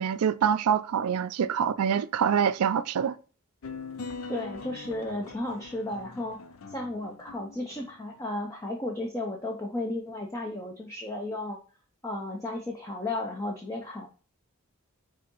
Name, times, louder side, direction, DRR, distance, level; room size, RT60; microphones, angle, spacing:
voice 1, 0.0-3.2, right 8 dB, 85° right, 0.4 m, -25 dB
sound 1, 3.6-8.2, left 4 dB, 70° left, 0.5 m, -42 dB
voice 2, 4.3-6.4 6.7-11.6 12.0-14.1, left 2 dB, 15° left, 0.6 m, -34 dB
4.9 x 3.5 x 3.0 m
head